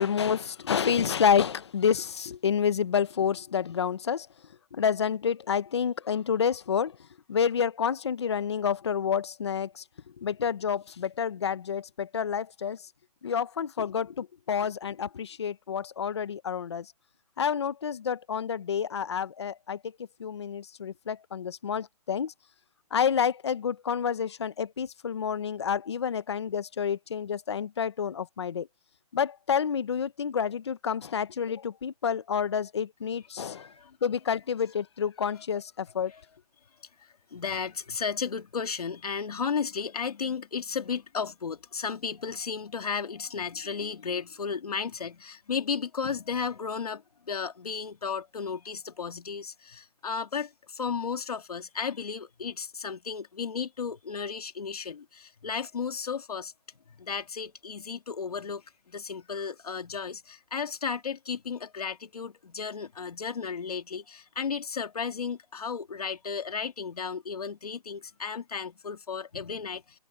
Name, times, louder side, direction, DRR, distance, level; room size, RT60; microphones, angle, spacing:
voice 1, 0.0-4.3 4.7-7.0 7.3-9.8 10.2-12.8 13.2-16.9 17.4-19.8 20.2-22.3 22.9-28.7 29.1-33.7 34.0-36.1, left 7 dB, 40° left, 0.8 m, -29 dB
voice 2, 33.5-34.0 36.1-36.2 37.3-56.5 57.0-70.0, left 6 dB, 65° left, 2.2 m, -34 dB
hypercardioid pair, 175°, 21 cm